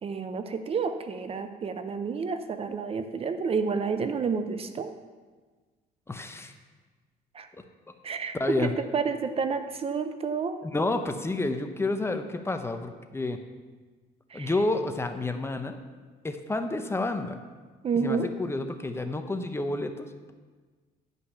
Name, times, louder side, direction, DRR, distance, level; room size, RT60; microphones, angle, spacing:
voice 1, 0.0-4.9 7.3-7.5 8.0-10.6 14.3-14.5 17.8-18.3, right 5 dB, 35° right, 9 dB, 0.5 m, -30 dB
voice 2, 6.1-6.5 8.3-8.8 10.6-13.4 14.3-15.8 16.2-17.4 18.0-20.3, left 2 dB, 15° left, 7 dB, 0.6 m, -30 dB
10.5 x 5.5 x 5.6 m, 1.4 s
cardioid pair, 110°, 17 cm